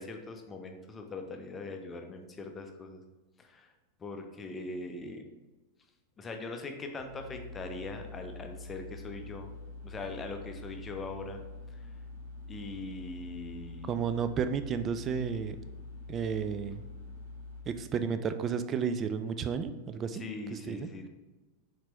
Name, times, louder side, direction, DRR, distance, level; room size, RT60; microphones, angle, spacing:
voice 1, 0.0-3.0 3.4-3.7 4.0-5.2 6.2-9.5 9.8-11.4 12.5-14.0 20.1-21.1, left 3 dB, 20° left, 4 dB, 0.6 m, -41 dB
sound 1, 7.0-17.6, left 2 dB, 75° right, 1.2 m, -45 dB
voice 2, 13.9-15.6 16.1-16.8 17.7-20.2 20.5-20.9, right 6 dB, 25° right, 10 dB, 0.3 m, -32 dB
4.4 x 3.8 x 3.0 m, 1.2 s
figure-of-eight pair, 90°, 0 cm